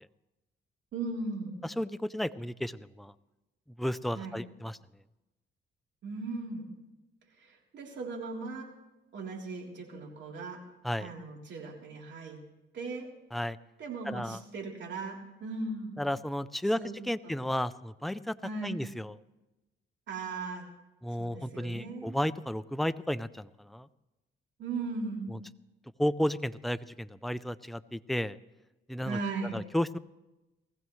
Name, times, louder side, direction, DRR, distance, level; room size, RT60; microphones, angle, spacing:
voice 1, 0.9-1.6 4.1-4.4 6.0-6.7 7.4-8.7 9.1-10.6 11.0-12.4 12.7-13.1 13.8-16.0 16.8-16.9 17.2-17.4 18.4-18.8 20.1-20.7 21.2-22.2 24.6-25.4 29.0-29.6, right 3 dB, 65° right, -1 dB, 3.5 m, -38 dB
voice 2, 1.6-3.1 3.8-4.8 10.8-11.1 13.3-13.6 14.1-14.4 16.0-16.8 17.1-18.4 18.6-19.2 21.0-23.9 26.0-28.4 28.9-29.2 29.5-30.0, left 1 dB, ahead, 13 dB, 0.4 m, -33 dB
19.5 x 15.0 x 3.2 m, 1.0 s
cardioid pair, 90°, 20 cm